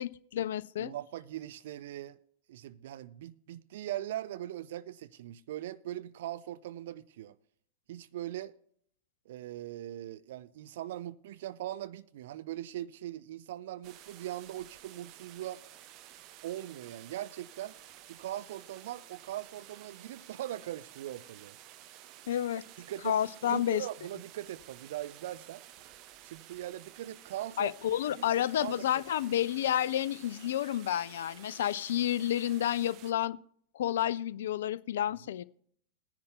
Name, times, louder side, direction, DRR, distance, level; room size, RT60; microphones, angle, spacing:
voice 1, 0.0-0.9 22.3-22.6 23.0-23.8 27.6-33.4 33.7-35.4, left 11 dB, 60° left, 0.4 m, -30 dB
voice 2, 0.8-2.2 2.5-7.4 7.9-8.6 9.3-15.6 16.4-17.8 18.1-21.6 22.8-23.2 23.4-25.6 26.2-28.3 28.6-29.0, right 13 dB, 55° right, 0.4 m, -40 dB
sound 1, 13.8-33.1, right 13 dB, 40° right, 0.8 m, -53 dB
21.0 x 10.5 x 2.2 m
figure-of-eight pair, 90°, 0 cm